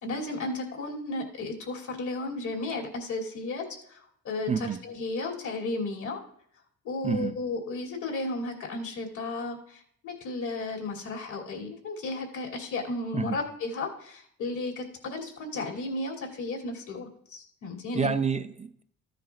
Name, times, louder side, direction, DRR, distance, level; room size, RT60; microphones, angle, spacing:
voice 1, 0.0-6.2 6.8-18.1, left 2 dB, 75° left, 2.9 m, -34 dB
voice 2, 4.5-4.8 7.0-7.3 13.1-13.4 17.9-18.8, right 6 dB, 25° right, 0.5 m, -28 dB
14.0 x 10.0 x 2.4 m
cardioid pair, 90°, 30 cm